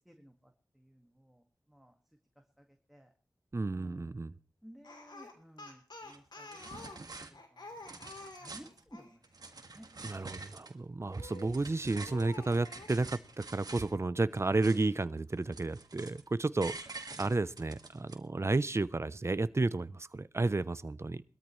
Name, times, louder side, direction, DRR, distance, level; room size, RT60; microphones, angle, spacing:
voice 1, 0.0-1.9 2.6-3.1 3.7-4.1 4.6-9.2 9.7-9.9, equal, 5° right, 1.9 m, -57 dB
voice 2, 3.5-4.3 10.0-16.8 17.2-21.2, right 3 dB, 35° right, 0.7 m, -32 dB
Speech, 4.8-9.2 11.2-11.6 12.1-12.9, left 2 dB, 80° left, 3.0 m, -49 dB
sound 1, 6.0-6.2 6.5-7.3 7.7-8.8 9.2-10.7 11.1-13.9 14.3-15.0 15.3-16.3 16.6-18.1, right 3 dB, 60° right, 1.9 m, -47 dB
21.5 x 13.5 x 3.2 m
cardioid pair, 45°, 7 cm